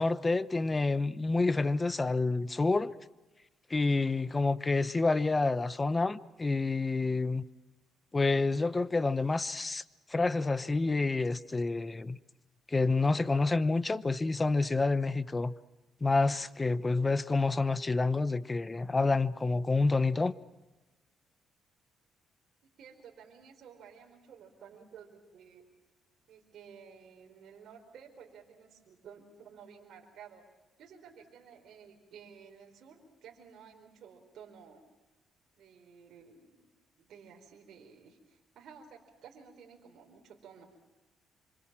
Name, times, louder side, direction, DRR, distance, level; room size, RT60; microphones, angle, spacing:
voice 1, 0.0-2.9 3.7-7.4 8.1-9.8 10.1-12.2 12.7-15.5 16.0-20.3, left 3 dB, 25° left, 0.9 m, -28 dB
voice 2, 22.8-25.7 26.3-30.4 30.8-34.8 35.6-36.7 37.0-40.7, right 7 dB, 70° right, 4.5 m, -53 dB
27.0 x 25.5 x 7.5 m
cardioid pair, 90°, 0 cm